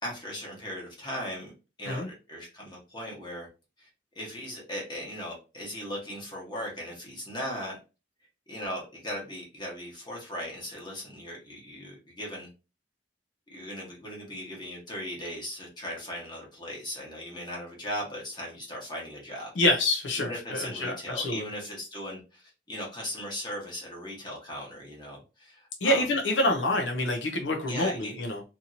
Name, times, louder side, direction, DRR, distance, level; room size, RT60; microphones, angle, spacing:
voice 1, 0.0-1.5 1.8-3.5 3.8-3.9 4.1-7.8 8.5-12.5 13.5-19.5 20.2-26.0 27.7-28.1, equal, 25° left, 1.0 m, -38 dB
voice 2, 19.6-21.4 25.8-28.4, left 1 dB, 80° left, 0.6 m, -27 dB
2.8 x 2.7 x 2.6 m
head